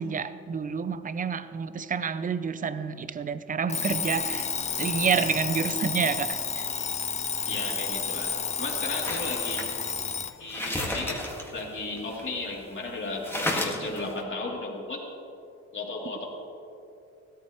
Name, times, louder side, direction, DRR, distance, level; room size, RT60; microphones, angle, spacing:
voice 1, 0.0-4.5 4.8-6.7, right 6 dB, 25° right, 13 dB, 0.6 m, -29 dB
Alarm, 3.7-10.4, left 6 dB, 25° left, 0.4 m, -31 dB
voice 2, 7.4-9.6 10.4-11.2 11.5-15.0 15.7-16.3, left 2 dB, 40° left, -3 dB, 3.1 m, -34 dB
sound 1, 9.0-12.6 12.9-13.0 13.2-14.2, left 1 dB, 10° left, 1.9 m, -33 dB
16.5 x 13.5 x 3.1 m, 2.7 s
cardioid pair, 90°, 30 cm